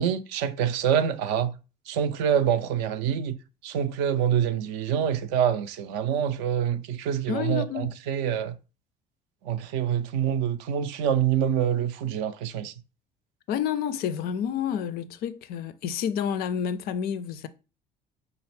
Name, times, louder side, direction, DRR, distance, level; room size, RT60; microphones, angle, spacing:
voice 1, 0.0-1.5 1.9-3.4 3.6-8.5 9.4-12.7, right 9 dB, 55° right, 0.4 m, -26 dB
voice 2, 7.3-7.9 13.5-17.5, left 8 dB, 45° left, 0.4 m, -29 dB
5.2 x 2.4 x 3.1 m
figure-of-eight pair, 55°, 21 cm